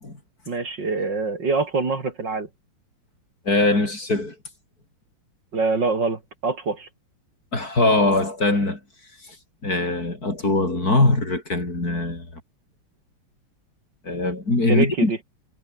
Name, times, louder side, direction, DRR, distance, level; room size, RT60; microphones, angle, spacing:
voice 1, 0.5-2.5 5.5-6.9 14.7-15.2, right 4 dB, 55° right, 3.9 m, -24 dB
voice 2, 3.5-4.4 7.5-8.8 9.2-9.4 9.6-12.4 14.0-15.1, left 2 dB, 45° left, 5.9 m, -21 dB
omnidirectional pair, 2.3 m